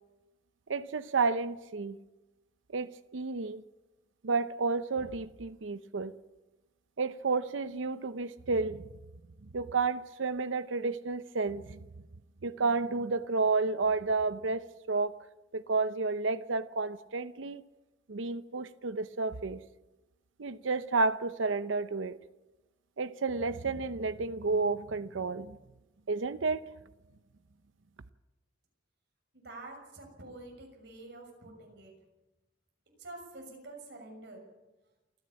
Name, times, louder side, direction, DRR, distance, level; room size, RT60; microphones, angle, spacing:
voice 1, 0.7-2.0 2.7-3.6 4.2-6.1 7.0-8.8 9.5-11.8 12.4-15.2 15.5-17.6 18.1-19.6 20.4-22.2 23.0-25.6 26.1-26.7, right 4 dB, 85° right, 0.7 m, -31 dB
voice 2, 29.3-31.9 33.0-34.4, right 2 dB, 65° right, 6.4 m, -47 dB
28.5 x 10.5 x 8.6 m
head